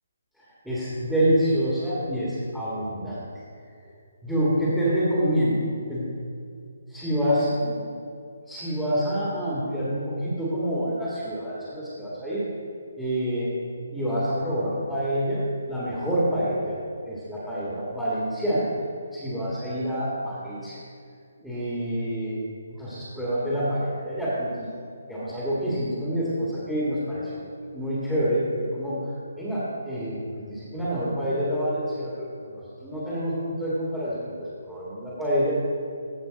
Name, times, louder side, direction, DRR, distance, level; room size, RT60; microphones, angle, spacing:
voice 1, 0.6-3.3 4.2-5.6 5.9-6.1 6.9-7.8 8.5-12.4 13.0-13.5 13.9-15.4 15.7-16.7 17.1-18.7 19.1-20.8 21.4-22.4 22.8-24.7 25.1-27.4 27.7-29.0 29.4-32.1 32.4-34.3 34.7-35.5, equal, ahead, -10 dB, 1.9 m, -27 dB
15.5 x 5.6 x 4.0 m, 2.4 s
figure-of-eight pair, 150°, 0 cm